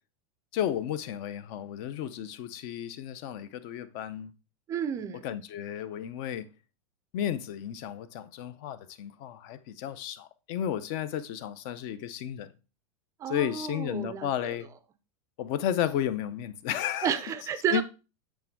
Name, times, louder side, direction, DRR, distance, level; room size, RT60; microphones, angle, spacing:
voice 1, 0.5-4.3 5.2-6.5 7.1-12.5 13.3-14.7 15.4-17.1 17.7-17.8, left 10 dB, 40° left, 0.6 m, -33 dB
voice 2, 4.7-5.3 13.2-14.5 17.0-17.8, right 8 dB, 15° right, 0.5 m, -31 dB
8.4 x 3.5 x 4.5 m
supercardioid pair, 155°, 18 cm